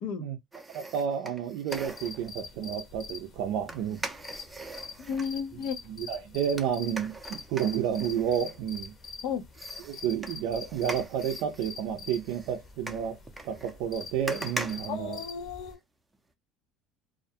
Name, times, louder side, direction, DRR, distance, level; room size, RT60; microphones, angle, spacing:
voice 1, 0.0-0.4 0.7-4.0 5.9-8.9 9.9-13.2 13.5-15.2, right 8 dB, 75° right, 0.4 m, -31 dB
sound 1, 0.5-2.3 3.7-5.3 6.6-9.1 9.5-15.8 16.1-16.2, right 2 dB, 10° right, 0.5 m, -42 dB
sound 2, 1.7-15.7, left 5 dB, 35° left, 0.8 m, -45 dB
voice 2, 5.0-5.8 9.2-9.4 14.9-15.8, left 7 dB, 70° left, 0.6 m, -33 dB
2.4 x 2.1 x 2.6 m
cardioid pair, 125°, 0 cm